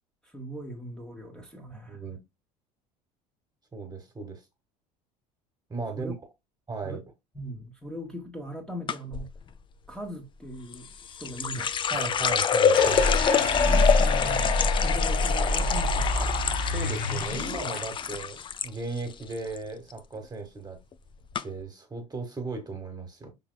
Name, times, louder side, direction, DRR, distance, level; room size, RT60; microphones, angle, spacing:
voice 1, 0.2-2.0 5.9-6.1 6.8-7.0 7.3-9.3 9.9-10.9 11.2-12.0 13.6-14.6 14.8-16.2, right 1 dB, 5° left, 1.3 m, -39 dB
voice 2, 1.9-2.2 3.7-4.4 5.7-6.1 6.7-7.0 11.9-13.1 16.1-16.3 16.7-20.8 21.4-23.3, right 3 dB, 20° right, 1.7 m, -36 dB
sound 1, 8.9-9.3 10.7-18.7 19.0-19.6 19.9-20.2 20.9-21.0 21.3-21.4, left 7 dB, 25° left, 0.5 m, -26 dB
sound 2, 12.7-17.8, left 2 dB, 45° left, 1.5 m, -26 dB
5.5 x 3.8 x 2.2 m
hypercardioid pair, 70°, 20 cm